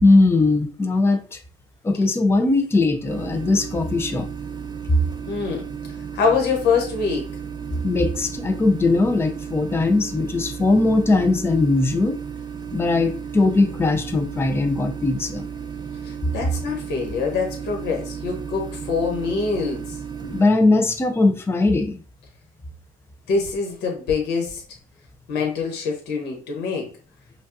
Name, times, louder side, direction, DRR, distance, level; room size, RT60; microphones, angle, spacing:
voice 1, 0.0-1.4 1.8-4.3 7.8-12.2 12.7-15.5 20.3-22.0, left 2 dB, 15° left, 0.5 m, -19 dB
sound 1, 3.1-20.4, right 7 dB, 25° right, 0.6 m, -34 dB
voice 2, 5.3-5.7 6.1-7.3 16.0-20.0 23.3-24.6 25.3-26.9, left 5 dB, 80° left, 1.2 m, -24 dB
5.1 x 2.3 x 2.6 m
cardioid pair, 110°, 17 cm